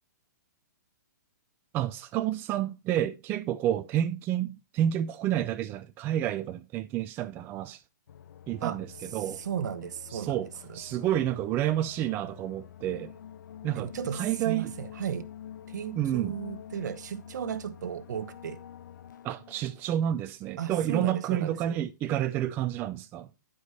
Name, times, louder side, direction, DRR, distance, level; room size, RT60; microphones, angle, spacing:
voice 1, 1.7-7.8 8.5-9.4 10.1-10.5 10.7-13.1 13.6-14.7 16.0-16.4 19.2-23.3, right 11 dB, 20° right, 0.4 m, -29 dB
sound 1, 8.1-20.1, left 10 dB, 75° left, 0.4 m, -47 dB
voice 2, 9.4-10.4 10.7-10.8 13.8-15.3 15.7-18.6 20.6-21.8, right 8 dB, 65° right, 1.0 m, -35 dB
9.9 x 5.0 x 4.1 m
hypercardioid pair, 145°, 10 cm